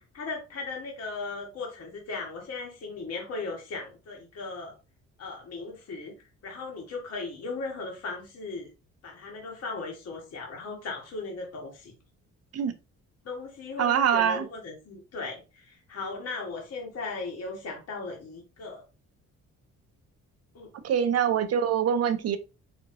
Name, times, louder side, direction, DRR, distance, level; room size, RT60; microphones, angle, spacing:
voice 1, 0.0-4.7 5.2-6.1 6.4-8.7 9.0-11.9 13.2-18.8 20.5-20.7, left 3 dB, 55° left, 1.4 m, -37 dB
voice 2, 13.8-14.5 20.8-22.4, right 8 dB, 55° right, 0.6 m, -24 dB
4.2 x 3.0 x 2.6 m
cardioid pair, 90°, 30 cm